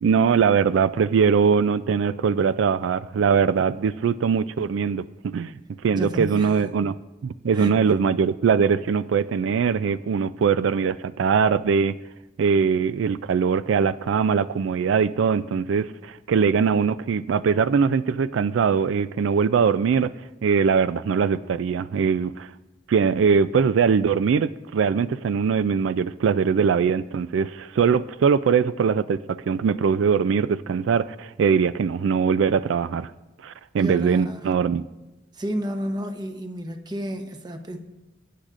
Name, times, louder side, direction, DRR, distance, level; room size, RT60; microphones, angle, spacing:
voice 1, 0.0-7.0 7.2-12.0 12.4-20.1 20.4-22.5 22.9-33.1 33.4-34.8, right 6 dB, 85° right, 15 dB, 0.3 m, -21 dB
voice 2, 5.9-6.6 7.5-7.7 33.8-34.5 35.3-37.8, equal, 20° right, 5 dB, 0.9 m, -31 dB
22.0 x 10.0 x 2.5 m, 1.0 s
head